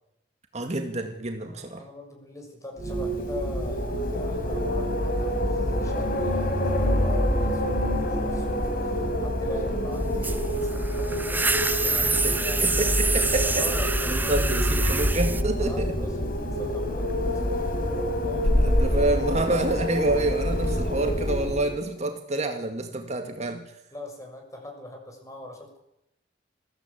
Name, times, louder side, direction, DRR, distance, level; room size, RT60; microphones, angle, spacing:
voice 1, 0.5-1.9 12.1-13.6 14.1-16.0 18.6-23.8, right 2 dB, 40° right, 5 dB, 2.1 m, -28 dB
voice 2, 1.4-12.7 13.4-14.6 15.6-18.5 23.9-25.8, left 1 dB, 20° left, 2 dB, 6.6 m, -41 dB
Wind, 2.8-21.8, equal, 55° left, 3.8 m, -26 dB
sound 1, 10.2-15.4, right 3 dB, 10° right, 0.9 m, -27 dB
21.5 x 15.5 x 8.5 m, 0.83 s
head